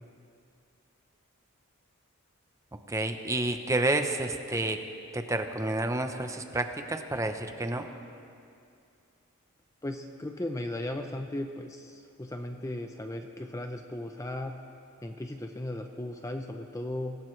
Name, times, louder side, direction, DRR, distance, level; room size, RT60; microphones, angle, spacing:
voice 1, 2.9-4.8 5.1-7.8, right 2 dB, 15° right, 6 dB, 0.8 m, -29 dB
voice 2, 9.8-14.5 15.0-17.2, left 1 dB, 15° left, 5 dB, 0.5 m, -36 dB
25.0 x 17.0 x 3.3 m, 2.4 s
head